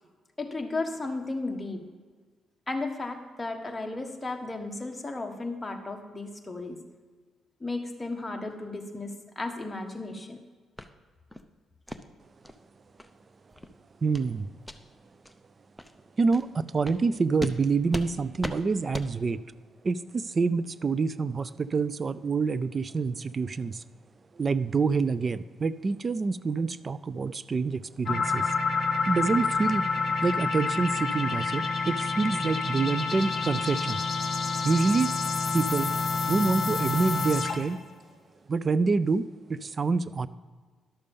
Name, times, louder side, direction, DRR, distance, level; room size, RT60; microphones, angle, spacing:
voice 1, 0.4-1.8 2.7-6.8 7.6-10.4, left 2 dB, 15° left, 3 dB, 1.4 m, -34 dB
sound 1, 10.8-10.9 11.3-11.5 11.9-12.0 12.4-12.6 13.0-13.1 13.5-13.7 14.1-14.3 14.6-14.8 15.2-15.3 15.8-15.9 16.3-16.4 16.8-17.0 17.4-17.6 17.9-18.1 18.4-18.6 18.9-19.1, equal, ahead, 0.6 m, -37 dB
voice 2, 14.0-14.5 16.2-19.4 19.8-23.8 24.4-28.5 29.1-29.8 30.2-34.0 34.6-35.1 35.5-35.9 36.3-37.8 38.5-40.3, right 4 dB, 35° right, 17 dB, 0.4 m, -27 dB
sound 2, 28.1-37.8, left 4 dB, 50° left, 1.3 m, -28 dB
11.5 x 6.7 x 5.3 m, 1.5 s
cardioid pair, 95°, 0 cm